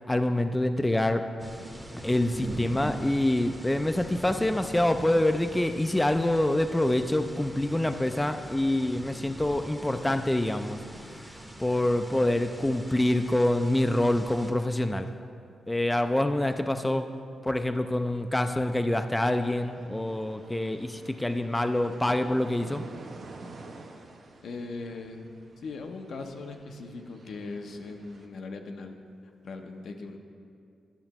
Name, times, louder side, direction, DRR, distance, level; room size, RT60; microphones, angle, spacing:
voice 1, 0.1-1.3 2.0-10.8 11.1-11.3 11.6-15.1 15.7-17.1 17.4-22.8, left 1 dB, 10° left, 7 dB, 0.3 m, -26 dB
sound 1, 1.4-14.5, right 1 dB, 5° right, 0.7 m, -42 dB
sound 2, 19.3-28.3, right 3 dB, 60° right, 0.7 m, -49 dB
voice 2, 24.4-25.3 25.6-29.0 29.4-30.2, left 3 dB, 70° left, 4 dB, 0.6 m, -39 dB
10.5 x 6.4 x 2.9 m, 2.4 s
cardioid pair, 75°, 0 cm